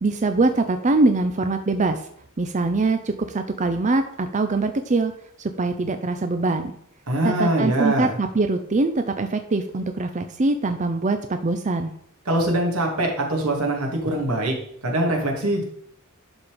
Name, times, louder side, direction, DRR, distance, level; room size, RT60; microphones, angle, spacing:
voice 1, 0.0-2.0 2.4-5.1 5.4-6.7 7.2-11.9, right 3 dB, 35° right, 7 dB, 0.6 m, -23 dB
voice 2, 7.1-8.1 12.3-14.5 14.8-15.6, right 1 dB, 85° right, 0 dB, 2.6 m, -23 dB
11.5 x 4.4 x 5.1 m, 0.67 s
head